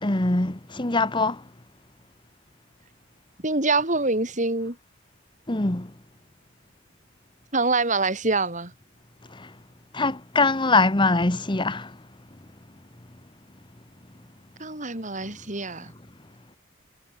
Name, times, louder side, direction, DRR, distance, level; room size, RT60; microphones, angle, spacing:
voice 1, 0.0-1.4 5.5-5.9 9.3-9.5 9.9-12.0, left 3 dB, 25° left, 1.3 m, -23 dB
voice 2, 3.4-4.8 7.5-8.7 14.6-15.9, right 3 dB, 40° right, 5.4 m, -25 dB
head